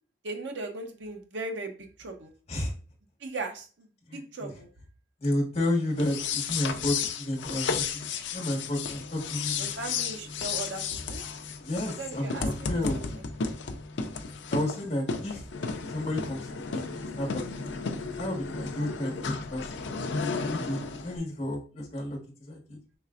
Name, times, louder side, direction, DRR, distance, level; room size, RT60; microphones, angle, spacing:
voice 1, 0.2-2.3 3.2-4.7 9.6-10.8 11.1-11.2 11.9-13.1, right 2 dB, 85° right, 4 dB, 0.7 m, -38 dB
voice 2, 4.1-4.5 5.2-9.7 11.6-13.0 14.5-15.4 15.8-17.7 18.2-22.8, left 1 dB, 35° left, -2 dB, 1.3 m, -32 dB
sound 1, 5.9-21.2, left 5 dB, 80° left, 0.5 m, -33 dB
5.2 x 3.3 x 2.4 m, 0.39 s
head